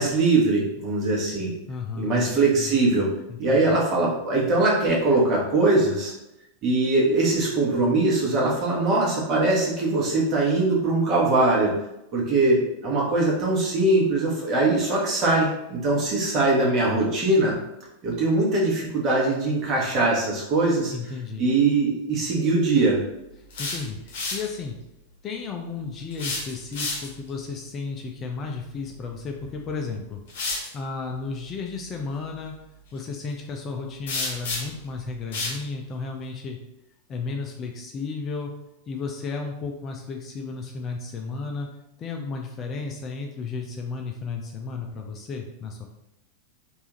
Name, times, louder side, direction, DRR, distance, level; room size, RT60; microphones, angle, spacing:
voice 1, 0.0-1.5 2.0-3.1 3.4-6.1 6.6-11.7 12.1-17.6 18.0-20.9 21.4-23.0, right 2 dB, 35° right, -4 dB, 1.1 m, -22 dB
voice 2, 1.7-2.7 3.3-3.8 20.9-21.5 23.6-24.8 25.2-30.2 30.7-32.5 32.9-36.6 37.1-38.5 38.9-41.7 42.0-45.9, left 4 dB, 30° left, 2 dB, 0.4 m, -33 dB
sound 1, 23.3-24.5 26.1-27.3 29.4-29.5 30.3-30.7 34.1-34.9 35.3-35.6, left 3 dB, 55° left, 0.8 m, -30 dB
3.4 x 2.5 x 3.0 m, 0.87 s
figure-of-eight pair, 90°, 0 cm